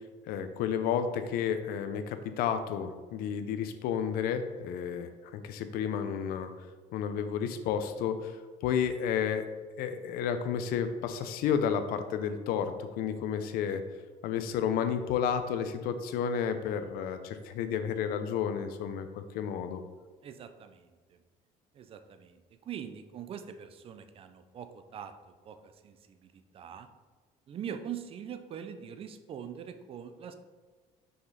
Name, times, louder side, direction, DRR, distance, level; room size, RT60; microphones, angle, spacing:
voice 1, 0.3-6.5 6.9-8.4 8.6-9.5 9.8-13.8 14.2-19.8, left 8 dB, 80° left, 9 dB, 0.6 m, -31 dB
voice 2, 20.2-21.2 21.7-26.9 27.5-30.3, right 8 dB, 40° right, 9 dB, 0.5 m, -43 dB
5.8 x 5.1 x 3.9 m, 1.4 s
cardioid pair, 145°, 15 cm